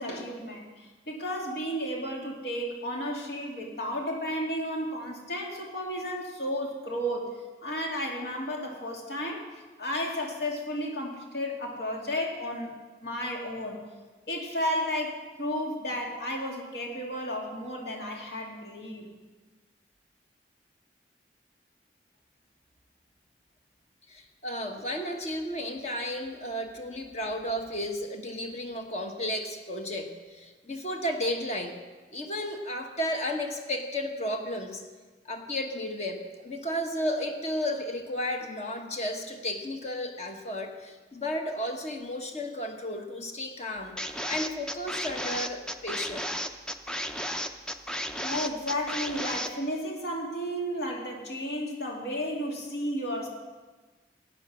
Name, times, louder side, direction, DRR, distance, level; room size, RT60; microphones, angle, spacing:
voice 1, 0.0-7.3 7.6-9.4 9.8-12.7 13.0-13.8 14.3-19.1 48.2-53.3, equal, 70° left, -1 dB, 2.6 m, -33 dB
voice 2, 24.1-31.8 32.1-34.8 35.2-44.0 44.3-46.3, left 1 dB, 40° left, 4 dB, 1.2 m, -33 dB
sound 1, 44.0-49.5, equal, 5° left, 0.5 m, -33 dB
16.5 x 9.1 x 6.2 m, 1.3 s
head